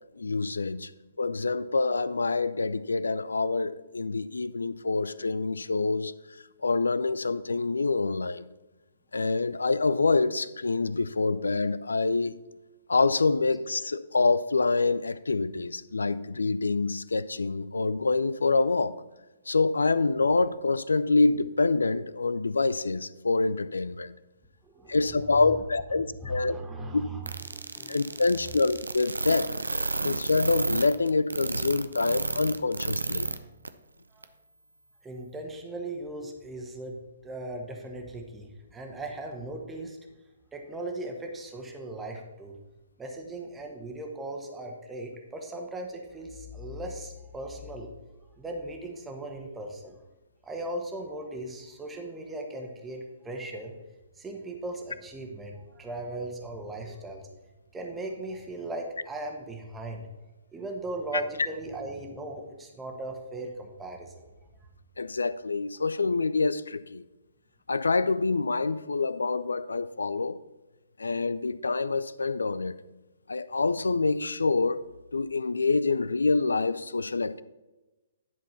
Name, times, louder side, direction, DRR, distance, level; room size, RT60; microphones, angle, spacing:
voice 1, 0.2-0.9 1.2-6.1 6.6-8.4 9.1-12.4 12.9-18.9 19.5-24.1 24.9-26.6 26.9-27.0 27.9-29.6 30.0-33.3 65.0-67.0 67.7-70.4 71.0-72.8 73.3-74.8 75.1-77.4, left 3 dB, 75° left, 0.4 m, -26 dB
voice 2, 24.6-28.6 34.1-34.3 35.0-40.0 40.5-42.6 43.0-47.9 48.4-50.0 50.4-53.7 54.2-57.3 57.7-60.1 60.5-64.2, right 2 dB, 10° right, 1.4 m, -38 dB
sound 1, 27.2-33.4 33.6-33.7 34.2-34.3, right 3 dB, 80° right, 0.6 m, -31 dB
11.0 x 4.5 x 5.6 m
figure-of-eight pair, 125°, 0 cm